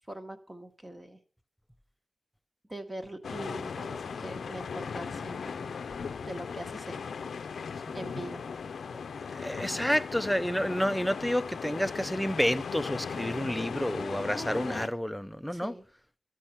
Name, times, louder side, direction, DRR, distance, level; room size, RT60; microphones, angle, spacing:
voice 1, 0.1-1.2 2.7-5.7 6.2-7.2 7.9-8.5 14.3-14.8 15.5-15.9, right 1 dB, 15° right, 1.1 m, -42 dB
sound 1, 3.2-14.9, left 6 dB, 90° left, 0.5 m, -37 dB
voice 2, 9.3-15.7, equal, ahead, 0.4 m, -30 dB
13.0 x 6.4 x 5.8 m
wide cardioid pair, 120°, 0 cm